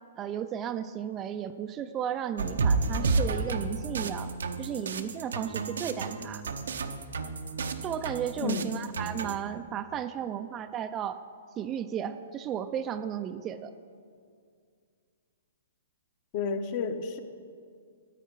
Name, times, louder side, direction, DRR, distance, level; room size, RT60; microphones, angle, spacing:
voice 1, 0.2-4.3 4.6-6.4 7.8-11.2 11.6-13.7, right 9 dB, 25° right, 10 dB, 0.4 m, -34 dB
sound 1, 2.4-9.4, right 4 dB, 80° right, 0.8 m, -31 dB
voice 2, 16.3-17.2, left 5 dB, 40° left, 7 dB, 0.9 m, -31 dB
13.5 x 8.7 x 4.6 m, 2.2 s
hypercardioid pair, 140°, 0 cm